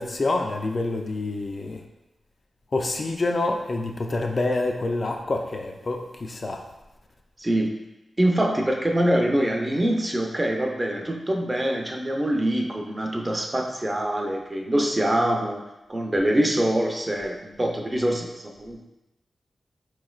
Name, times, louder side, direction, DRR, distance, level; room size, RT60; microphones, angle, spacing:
voice 1, 0.0-1.8 2.7-6.6, left 2 dB, 45° left, 2 dB, 0.4 m, -27 dB
voice 2, 7.4-7.8 8.2-15.6 15.9-18.8, right 1 dB, 20° right, 2 dB, 0.4 m, -24 dB
4.4 x 3.1 x 2.3 m, 0.98 s
wide cardioid pair, 100°, 0 cm